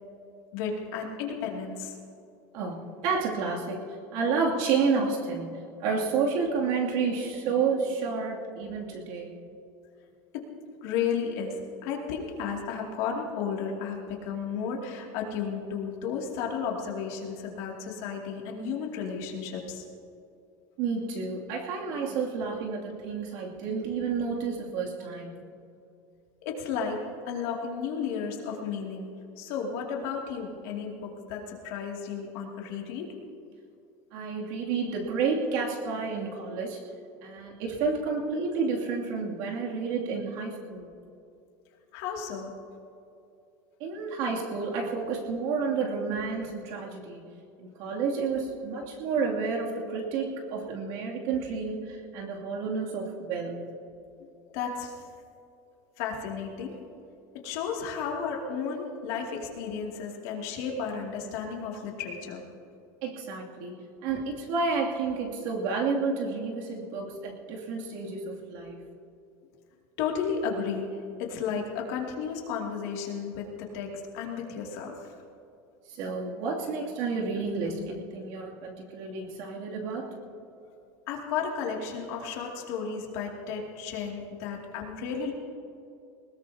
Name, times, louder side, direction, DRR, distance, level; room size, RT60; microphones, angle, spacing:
voice 1, 0.5-1.9 10.8-19.8 26.4-33.2 41.9-42.6 54.2-55.0 56.0-56.8 57.4-62.4 70.0-75.1 81.1-85.3, left 6 dB, 60° left, -1 dB, 2.6 m, -33 dB
voice 2, 2.5-3.8 4.1-9.3 20.8-25.5 34.1-36.8 37.2-40.9 43.8-47.2 47.6-53.7 63.0-68.8 75.9-80.1, right 5 dB, 55° right, -2 dB, 2.7 m, -30 dB
21.5 x 20.0 x 2.9 m, 2.5 s
cardioid pair, 175°, 9 cm